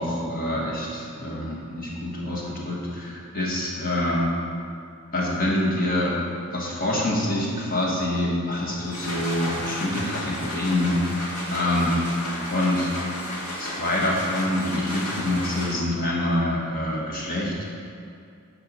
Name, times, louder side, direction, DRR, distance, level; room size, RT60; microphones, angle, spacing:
voice 1, 0.0-4.3 5.1-6.1 6.5-12.0 12.5-12.9 13.6-17.7, left 1 dB, 40° left, -4 dB, 1.7 m, -26 dB
sound 1, 8.7-16.0, left 1 dB, 85° left, 1.8 m, -33 dB
9.0 x 5.7 x 5.5 m, 2.4 s
head